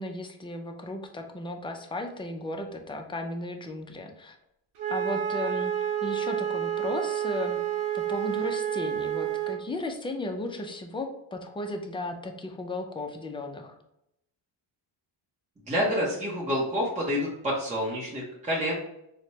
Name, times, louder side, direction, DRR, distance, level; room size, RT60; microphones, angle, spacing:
voice 1, 0.0-4.4 4.9-5.7 6.0-7.6 7.9-13.8, left 2 dB, 10° left, 4 dB, 0.3 m, -35 dB
Wind instrument woodwind instrument, 4.8-9.6, right 10 dB, 80° right, 0.8 m, -29 dB
voice 2, 15.7-18.7, equal, 15° right, -5 dB, 0.8 m, -28 dB
4.1 x 2.2 x 3.0 m, 0.81 s
cardioid pair, 105°, 49 cm